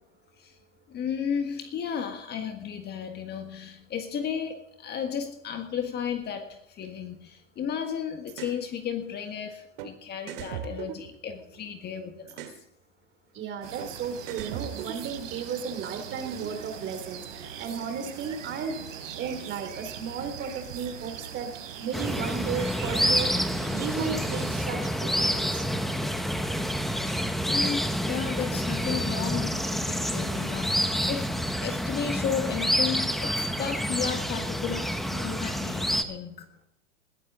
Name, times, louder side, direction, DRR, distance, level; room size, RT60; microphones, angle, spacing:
voice 1, 0.9-12.6 27.4-36.5, left 7 dB, 25° left, 6 dB, 1.6 m, -34 dB
sound 1, 8.3-8.6 9.8-9.9 10.3-11.7 12.3-12.6 13.8-13.9 14.3-15.4, right 11 dB, 50° right, 2.1 m, -38 dB
voice 2, 13.3-18.8 19.2-21.5 21.8-25.6, right 6 dB, 30° right, 7 dB, 2.8 m, -34 dB
sound 2, 13.6-24.6, right 8 dB, 75° right, 4.5 m, -41 dB
sound 3, 21.9-36.0, equal, ahead, 0.9 m, -28 dB
20.5 x 12.5 x 3.8 m, 0.79 s
hypercardioid pair, 130°, 39 cm